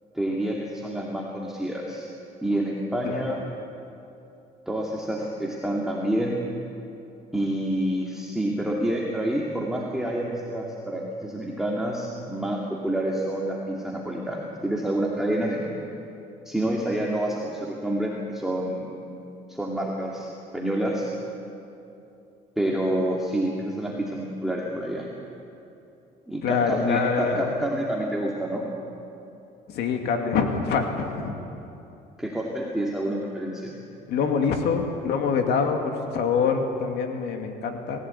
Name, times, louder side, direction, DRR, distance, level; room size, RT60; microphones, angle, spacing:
voice 1, 0.1-2.1 2.4-3.4 4.7-6.4 7.3-15.7 16.4-18.9 19.5-20.3 20.5-21.1 22.6-25.1 26.3-28.7 32.2-33.7, right 1 dB, 5° right, -3 dB, 2.5 m, -28 dB
voice 2, 26.4-27.5 29.7-31.4 34.1-38.0, left 5 dB, 75° left, 4 dB, 2.4 m, -25 dB
27.0 x 15.5 x 8.4 m, 2.7 s
cardioid pair, 110°, 17 cm